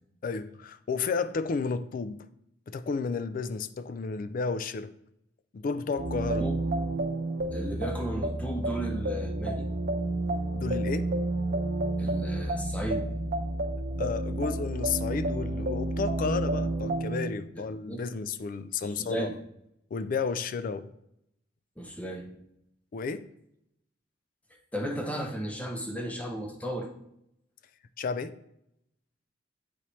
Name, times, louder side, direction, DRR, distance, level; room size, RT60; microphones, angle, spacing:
voice 1, 0.2-2.2 2.7-4.9 5.5-6.5 10.5-11.1 14.0-19.3 19.9-20.9 22.9-23.3 28.0-28.4, left 5 dB, 45° left, 0.3 m, -32 dB
sound 1, 6.0-17.3, right 2 dB, 50° right, 0.8 m, -30 dB
voice 2, 7.5-9.7 12.0-13.1 17.5-18.0 18.8-19.4 21.8-22.3 24.7-26.9, right 1 dB, 5° left, 0.7 m, -34 dB
8.3 x 4.2 x 3.1 m
head